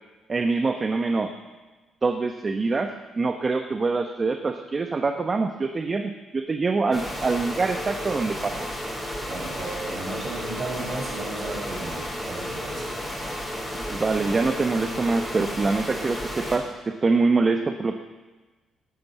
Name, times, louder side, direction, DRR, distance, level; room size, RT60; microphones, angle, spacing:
voice 1, 0.3-1.3 2.0-2.9 3.2-8.7 13.9-18.0, right 3 dB, 30° right, 6 dB, 0.9 m, -24 dB
sound 1, 6.9-16.6, equal, 5° left, 4.8 m, -33 dB
voice 2, 9.3-12.9, right 3 dB, 50° right, 0 dB, 5.4 m, -34 dB
12.5 x 12.0 x 7.3 m, 1.2 s
cardioid pair, 90°, 0 cm